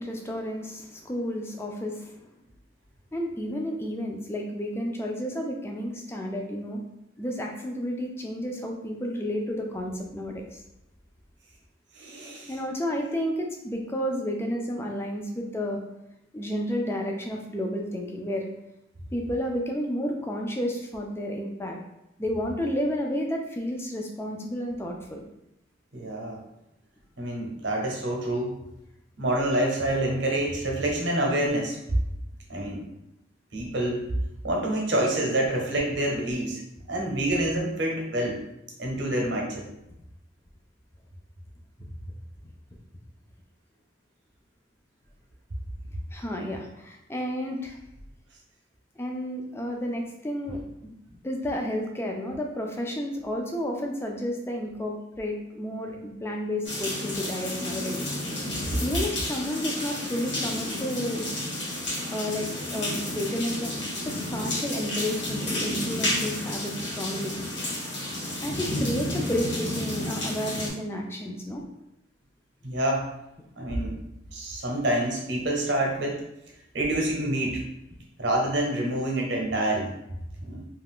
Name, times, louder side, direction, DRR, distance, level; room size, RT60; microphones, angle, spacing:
voice 1, 0.0-2.2 3.1-6.8 7.2-10.6 12.5-15.8 16.3-18.5 19.1-21.8 22.2-25.2 46.1-47.8 49.0-50.9 51.2-58.0 58.8-61.3 62.1-67.4 68.4-71.6, equal, 15° left, 1 dB, 0.3 m, -31 dB
voice 2, 11.9-12.5 25.9-26.4 27.2-28.6 29.2-31.8 32.5-32.9 33.5-34.0 34.4-36.6 36.9-38.4 38.8-39.7 72.6-73.1 73.6-74.0 74.3-76.2 76.7-77.7 78.2-80.0 80.4-80.7, right 1 dB, 65° right, -1 dB, 0.7 m, -27 dB
sound 1, 56.6-70.7, left 1 dB, 70° left, 1.1 m, -31 dB
2.4 x 2.3 x 3.5 m, 0.85 s
head